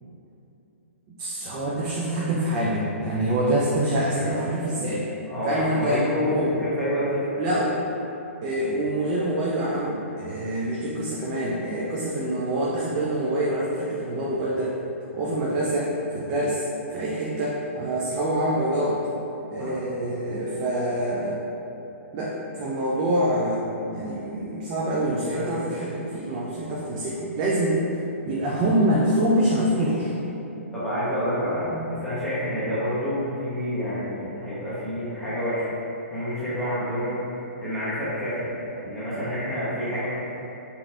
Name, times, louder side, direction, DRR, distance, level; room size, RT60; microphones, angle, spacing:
voice 1, 1.2-5.1 5.4-6.5 7.4-7.8 8.4-14.8 15.1-16.6 16.9-19.0 19.5-21.4 22.1-27.8 28.3-30.1 31.7-31.9, right 1 dB, 30° right, -5 dB, 0.4 m, -25 dB
voice 2, 5.3-7.3 19.6-19.7 25.3-25.8 30.7-35.7 36.1-40.1, equal, 5° left, -13 dB, 0.9 m, -28 dB
3.8 x 2.8 x 2.4 m, 3.0 s
hypercardioid pair, 140°, 7 cm